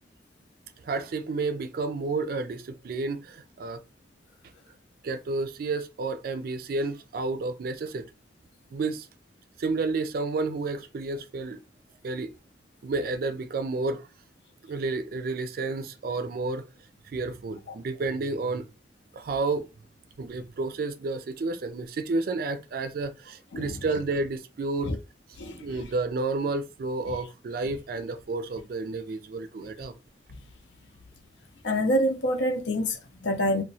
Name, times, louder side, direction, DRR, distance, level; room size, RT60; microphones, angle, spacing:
voice 1, 0.8-3.8 5.0-8.1 8.7-9.1 9.6-11.6 12.0-12.3 12.8-14.1 14.7-16.7 17.1-18.7 19.1-19.7 20.2-24.9 25.5-29.9, right 3 dB, 55° right, 0.3 m, -31 dB
voice 2, 31.6-33.6, equal, 85° left, 0.6 m, -26 dB
2.9 x 2.2 x 2.6 m
head